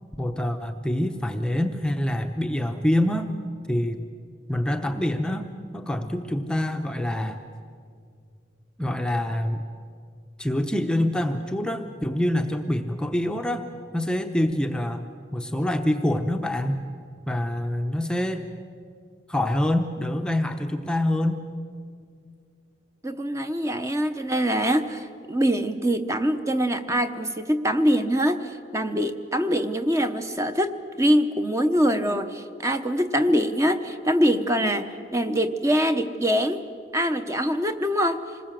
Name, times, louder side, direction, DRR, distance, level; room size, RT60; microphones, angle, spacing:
voice 1, 0.2-3.3 3.7-4.0 4.5-5.5 5.7-7.4 8.8-9.6 10.4-13.6 13.9-15.1 15.3-16.8 17.3-18.5 19.3-21.4, left 1 dB, 5° left, 5 dB, 0.8 m, -25 dB
voice 2, 23.0-36.6 36.9-38.4, equal, 15° right, 8 dB, 0.9 m, -24 dB
26.5 x 20.5 x 7.6 m, 2.2 s
head